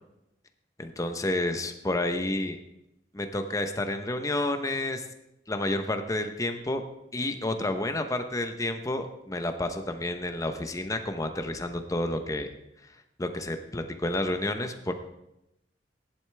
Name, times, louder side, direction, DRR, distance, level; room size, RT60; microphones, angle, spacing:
voice 1, 0.8-2.6 3.1-5.0 5.5-6.8 7.1-12.5 13.2-14.9, left 1 dB, 20° left, 7 dB, 0.9 m, -30 dB
15.0 x 11.0 x 3.4 m, 0.88 s
head